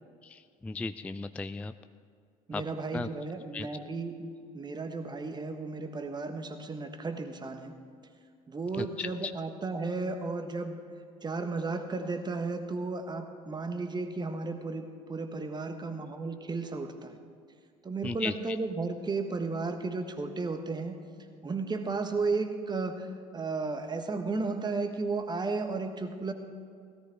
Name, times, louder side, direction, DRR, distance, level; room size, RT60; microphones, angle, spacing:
voice 1, 0.2-1.7 2.5-2.6 2.9-3.1 3.5-3.7 8.8-9.1 18.0-18.3, left 3 dB, 5° left, 11 dB, 0.3 m, -35 dB
voice 2, 2.5-7.8 8.5-10.8 11.2-17.2 17.8-21.0 21.4-26.3, right 3 dB, 20° right, 7 dB, 1.3 m, -34 dB
17.0 x 13.5 x 3.6 m, 2.2 s
figure-of-eight pair, 60°, 19 cm